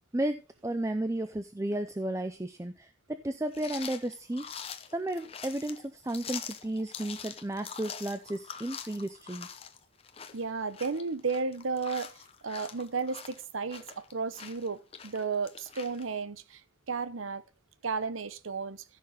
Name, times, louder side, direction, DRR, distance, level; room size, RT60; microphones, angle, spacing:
voice 1, 0.1-4.4 4.9-9.5, right 1 dB, 15° right, 0.5 m, -33 dB
sound 1, 3.5-16.1, left 7 dB, 30° left, 0.8 m, -44 dB
voice 2, 10.3-12.1 12.4-16.6 16.9-17.4 17.8-18.8, right 4 dB, 85° right, 0.8 m, -33 dB
15.0 x 6.5 x 3.8 m
head